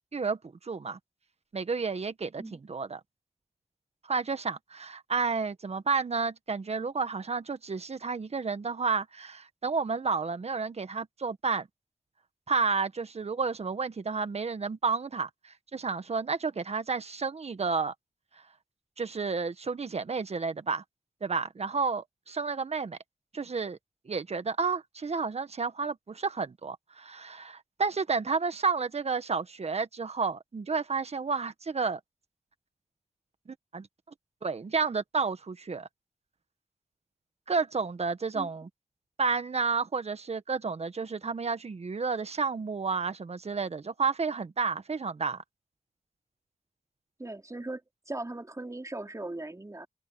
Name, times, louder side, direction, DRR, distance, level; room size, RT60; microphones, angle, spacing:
voice 1, 0.1-1.0 1.5-3.0 4.0-11.7 12.5-17.9 18.3-18.4 19.0-20.8 21.2-23.0 23.3-23.8 24.0-32.0 33.5-33.9 34.4-35.9 37.5-38.7 39.2-45.4, right 4 dB, 60° right, 1.6 m, -31 dB
voice 2, 47.2-49.9, right 2 dB, 25° right, 4.7 m, -39 dB
cardioid pair, 40°, 12 cm